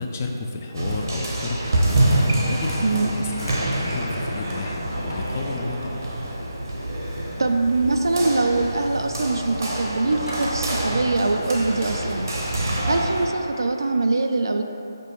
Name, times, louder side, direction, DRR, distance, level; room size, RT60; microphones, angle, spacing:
voice 1, 0.0-6.0, left 3 dB, 35° left, 2 dB, 0.4 m, -32 dB
sound 1, 0.7-13.3, right 1 dB, 60° right, 0.8 m, -26 dB
sound 2, 2.7-13.9, equal, 15° left, 0.8 m, -42 dB
Sliding door, 3.2-7.4 7.7-14.1, left 1 dB, 90° left, 1.0 m, -38 dB
voice 2, 7.4-12.3 12.9-14.6, right 3 dB, 75° right, 5 dB, 0.3 m, -23 dB
5.1 x 2.2 x 4.5 m, 2.8 s
figure-of-eight pair, 155°, 2 cm